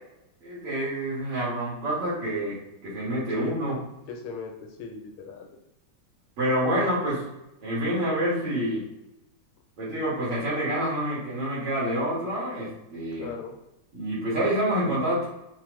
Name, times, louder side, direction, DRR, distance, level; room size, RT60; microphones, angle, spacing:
voice 1, 0.4-2.6 2.8-3.8 6.4-7.2 7.6-8.8 9.8-13.3 13.9-15.3, right 1 dB, 70° right, -8 dB, 2.5 m, -27 dB
voice 2, 3.4-3.7 4.1-5.5 13.1-13.5, left 4 dB, 90° left, 3 dB, 1.6 m, -38 dB
5.4 x 2.1 x 3.1 m, 0.90 s
omnidirectional pair, 2.3 m